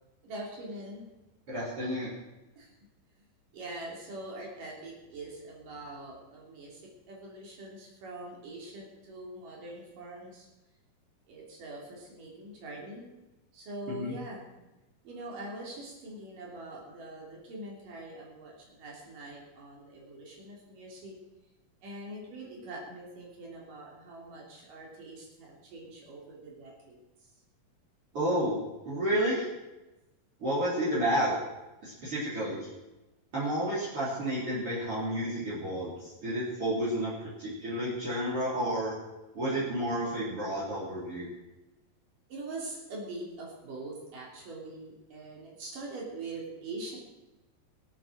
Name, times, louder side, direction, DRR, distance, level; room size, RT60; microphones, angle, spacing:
voice 1, 0.2-1.1 2.6-2.7 3.5-6.8 7.1-10.5 11.3-13.1 13.5-14.4 15.0-21.2 21.8-27.0 42.3-47.0, right 2 dB, 70° right, -2 dB, 4.9 m, -43 dB
voice 2, 1.5-2.1 13.9-14.1 28.1-28.6 28.8-29.5 30.4-31.4 31.8-32.7 33.3-38.9 39.3-41.3, equal, 40° right, -9 dB, 4.7 m, -31 dB
22.0 x 8.9 x 6.3 m, 1.0 s
omnidirectional pair, 4.0 m